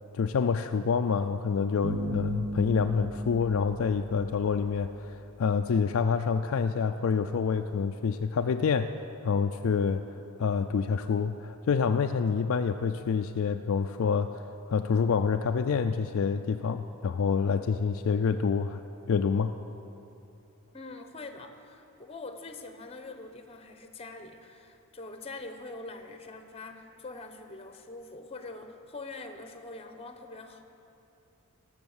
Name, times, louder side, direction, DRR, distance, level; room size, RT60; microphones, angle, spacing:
voice 1, 0.1-8.9 9.2-14.4 14.7-18.8 19.1-19.6, left 5 dB, 65° left, 7 dB, 0.4 m, -27 dB
sound 1, 1.8-5.2, right 1 dB, 55° right, 0.7 m, -37 dB
voice 2, 20.7-30.6, left 3 dB, 25° left, 7 dB, 0.9 m, -44 dB
18.0 x 6.6 x 7.2 m, 2.8 s
head